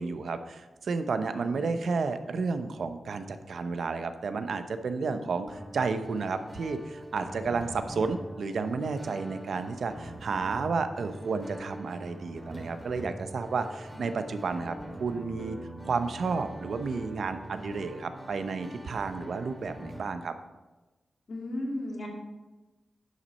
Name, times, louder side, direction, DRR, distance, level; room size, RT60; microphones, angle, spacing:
voice 1, 0.0-15.6 15.8-20.3, right 4 dB, 75° right, 9 dB, 0.7 m, -32 dB
sound 1, 5.5-20.1, right 1 dB, 10° right, 2.0 m, -44 dB
voice 2, 21.3-22.1, left 1 dB, 60° left, -1 dB, 2.3 m, -36 dB
11.0 x 6.2 x 4.2 m, 1.1 s
cardioid pair, 70°, 0 cm